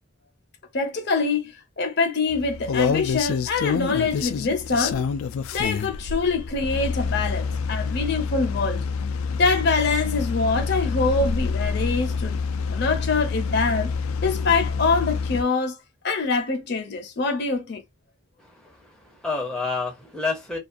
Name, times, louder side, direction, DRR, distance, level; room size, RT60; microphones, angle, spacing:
voice 1, 0.7-5.0 5.5-8.8 9.4-12.4 12.7-13.9 14.2-15.8 16.0-17.8, left 4 dB, 50° left, 0.6 m, -24 dB
sound 1, 2.3-15.4, left 5 dB, 85° left, 0.3 m, -27 dB
voice 2, 18.6-20.6, left 3 dB, 5° left, 0.6 m, -29 dB
2.4 x 2.3 x 2.4 m
head